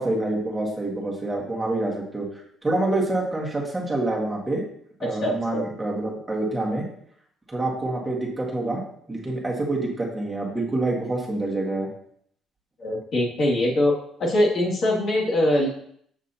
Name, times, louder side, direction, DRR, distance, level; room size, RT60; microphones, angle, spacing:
voice 1, 0.0-2.3 2.6-4.6 5.0-6.9 7.5-8.8 9.1-11.9, right 2 dB, 10° right, -2 dB, 1.9 m, -26 dB
voice 2, 5.0-5.6 12.8-13.9 14.2-15.7, left 1 dB, 45° left, -3 dB, 2.3 m, -22 dB
7.5 x 6.1 x 2.8 m, 0.67 s
cardioid pair, 105°, 0 cm